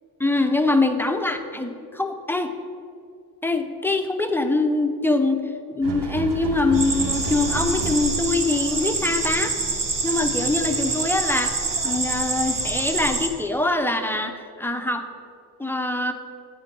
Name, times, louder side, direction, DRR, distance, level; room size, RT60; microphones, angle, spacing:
voice 1, 0.2-2.5 3.4-5.4 5.7-9.5 10.0-11.5 11.8-15.0 15.6-16.1, left 2 dB, 5° left, 5 dB, 0.4 m, -23 dB
sound 1, 5.8-8.5, right 3 dB, 80° right, 0.7 m, -31 dB
sound 2, 6.7-13.3, right 3 dB, 55° right, 0.9 m, -26 dB
9.1 x 4.4 x 5.1 m, 2.3 s
wide cardioid pair, 105°, 40 cm